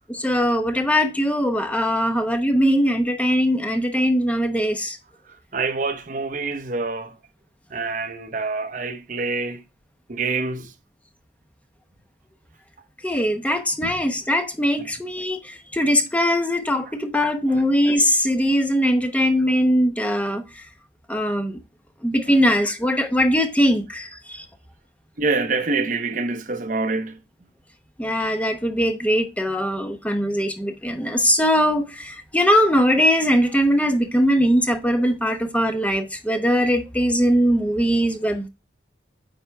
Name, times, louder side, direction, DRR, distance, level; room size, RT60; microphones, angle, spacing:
voice 1, 0.1-5.0 13.0-20.6 21.1-21.6 22.0-24.4 28.0-38.5, equal, 10° left, 0.8 m, -21 dB
voice 2, 5.5-7.2 7.7-9.6 10.1-10.7 13.8-14.0 14.8-14.9 17.5-17.7 25.2-27.2, right 3 dB, 45° right, 0.8 m, -26 dB
9.2 x 4.3 x 3.4 m
head